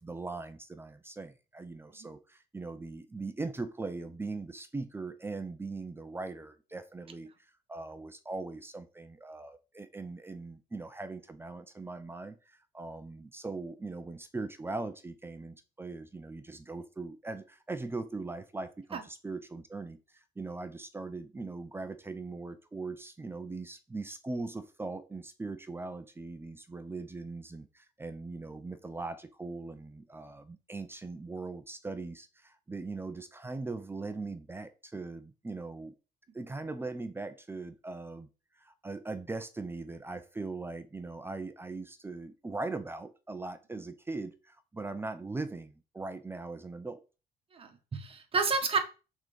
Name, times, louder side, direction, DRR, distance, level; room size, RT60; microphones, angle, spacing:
voice 1, 0.0-7.3 7.7-20.0 20.4-35.9 36.3-38.3 38.6-47.0, right 3 dB, 15° right, 0.7 m, -40 dB
voice 2, 47.5-48.8, right 4 dB, 35° right, 1.5 m, -30 dB
6.1 x 3.9 x 5.3 m
cardioid pair, 110°, 17 cm